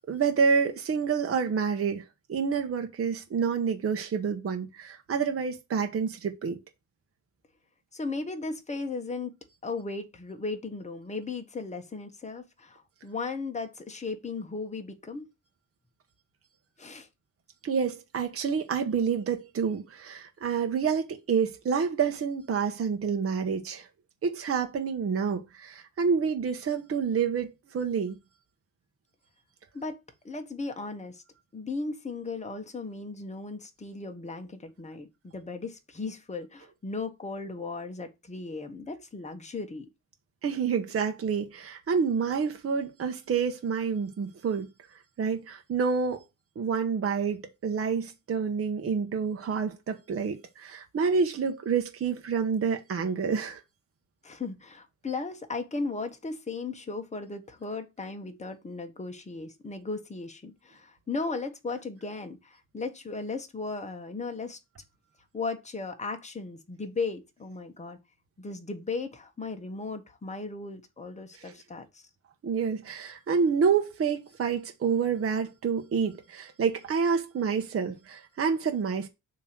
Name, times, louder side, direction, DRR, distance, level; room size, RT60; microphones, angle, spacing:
voice 1, 0.1-6.6 17.6-23.9 24.2-28.1 40.4-44.7 45.2-46.2 46.6-53.6 71.4-71.5 72.4-79.1, right 6 dB, 45° right, 1.0 m, -28 dB
voice 2, 7.9-9.3 9.6-15.3 16.8-17.1 29.7-30.0 30.2-31.2 31.5-39.9 54.2-64.6 65.3-68.0 68.4-72.0, left 3 dB, 20° left, 1.4 m, -36 dB
7.1 x 3.1 x 6.1 m
cardioid pair, 100°, 32 cm